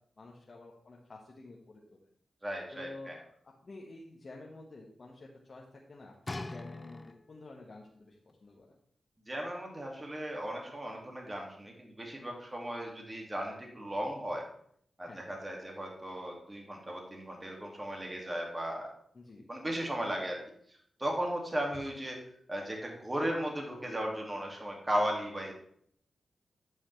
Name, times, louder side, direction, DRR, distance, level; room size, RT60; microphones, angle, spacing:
voice 1, 0.2-2.0 2.7-3.2 3.6-8.2 8.4-8.7 15.1-15.3 19.1-19.4, left 2 dB, 55° left, -3 dB, 1.4 m, -50 dB
voice 2, 2.4-3.2 9.3-14.4 15.0-18.9 19.5-20.4 20.7-22.2 22.5-25.5, equal, 25° right, 0 dB, 2.2 m, -36 dB
sound 1, 6.3-7.5 8.3-8.4, left 2 dB, 35° left, 0.5 m, -42 dB
12.0 x 5.6 x 3.3 m, 0.66 s
cardioid pair, 55°, 0 cm